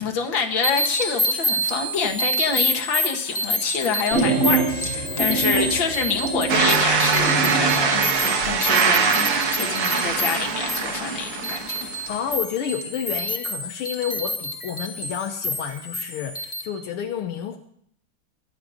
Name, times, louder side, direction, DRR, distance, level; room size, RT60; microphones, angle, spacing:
voice 1, 0.0-11.9, left 5 dB, 60° left, 2.5 m, -27 dB
sound 1, 0.6-16.6, left 1 dB, 30° left, 2.2 m, -28 dB
sound 2, 4.1-7.9, right 5 dB, 30° right, 4.0 m, -25 dB
sound 3, 6.5-12.3, right 5 dB, 90° right, 2.4 m, -22 dB
voice 2, 12.1-17.6, left 8 dB, 80° left, 1.9 m, -30 dB
24.0 x 8.1 x 5.1 m
omnidirectional pair, 2.4 m